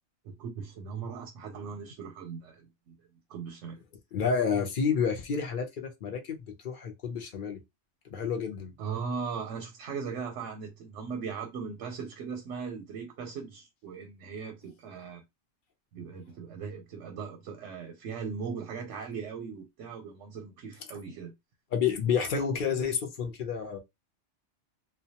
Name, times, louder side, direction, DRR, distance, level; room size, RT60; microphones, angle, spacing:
voice 1, 0.2-3.0 3.3-3.8 8.8-15.2 15.9-21.3, right 6 dB, 90° right, 0.9 m, -39 dB
voice 2, 4.1-6.4 6.6-7.6 8.1-8.7 21.7-23.8, left 6 dB, 55° left, 0.6 m, -29 dB
2.2 x 2.2 x 2.7 m
omnidirectional pair, 1.2 m